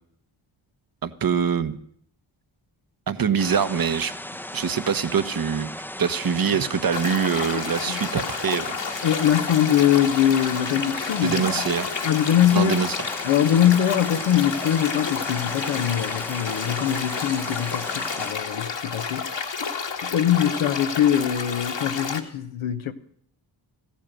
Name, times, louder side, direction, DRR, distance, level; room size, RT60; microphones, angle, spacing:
voice 1, 1.0-1.8 3.1-4.1 4.5-5.7 6.0-8.8 11.2-11.9 12.5-13.0, right 7 dB, 45° right, 1.2 m, -24 dB
sound 1, 3.4-18.3, left 1 dB, 5° left, 0.8 m, -36 dB
sound 2, 6.9-22.2, left 5 dB, 60° left, 1.9 m, -30 dB
voice 2, 9.0-11.7 12.0-12.8 13.2-19.3 20.0-22.9, left 10 dB, 75° left, 1.0 m, -22 dB
14.5 x 8.5 x 9.0 m
supercardioid pair, 40°, 49 cm